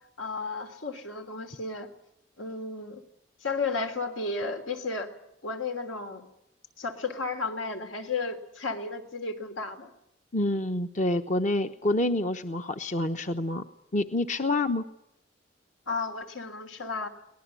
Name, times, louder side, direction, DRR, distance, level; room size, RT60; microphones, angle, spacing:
voice 1, 0.2-1.9 2.4-3.0 3.4-5.1 5.4-6.2 6.8-9.9 15.9-17.1, left 3 dB, 80° left, 6 dB, 3.4 m, -33 dB
voice 2, 10.3-13.6 13.9-14.8, left 2 dB, 40° left, 7 dB, 0.9 m, -27 dB
24.0 x 19.0 x 8.4 m, 0.78 s
head